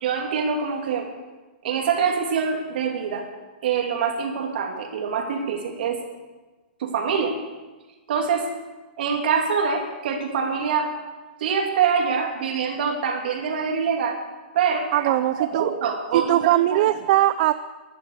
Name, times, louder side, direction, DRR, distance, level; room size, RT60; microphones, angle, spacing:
voice 1, 0.0-1.1 1.6-3.3 3.6-6.0 6.8-7.3 8.1-8.5 9.0-10.9 11.4-14.2 14.5-16.4 16.7-16.8, right 6 dB, 65° right, 2 dB, 3.0 m, -25 dB
voice 2, 14.9-15.7 16.1-17.5, right 14 dB, 50° right, 13 dB, 0.5 m, -20 dB
14.5 x 11.0 x 6.7 m, 1.2 s
hypercardioid pair, 145°, 6 cm